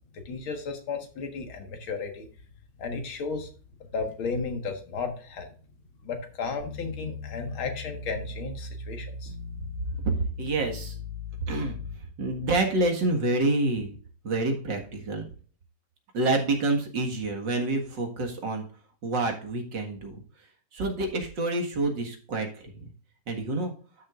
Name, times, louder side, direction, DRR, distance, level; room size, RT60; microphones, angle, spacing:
voice 1, 0.1-2.3 2.8-3.5 3.9-5.5 6.0-9.3, left 4 dB, 90° left, 5 dB, 2.4 m, -34 dB
sound 1, 6.6-11.9, left 4 dB, 35° right, 2.9 m, -38 dB
voice 2, 10.0-11.0 11.4-11.8 12.2-14.0 14.2-15.3 16.1-18.6 19.0-20.2 20.7-22.9 23.3-23.7, right 2 dB, 60° right, 2 dB, 2.4 m, -27 dB
12.5 x 6.6 x 2.5 m, 0.41 s
omnidirectional pair, 2.2 m